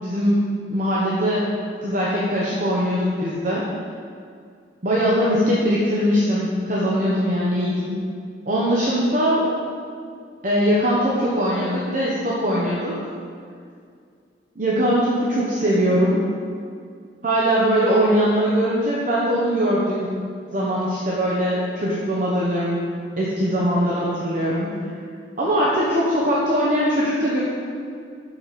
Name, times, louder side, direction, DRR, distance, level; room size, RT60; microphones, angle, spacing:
voice 1, 0.0-1.4 1.8-3.6 4.8-8.0 8.5-9.5 10.4-13.0 14.6-16.2 17.2-20.1 20.5-22.8 23.2-24.7 25.4-27.4, equal, 45° right, -6 dB, 0.9 m, -21 dB
6.0 x 5.8 x 4.1 m, 2.2 s
head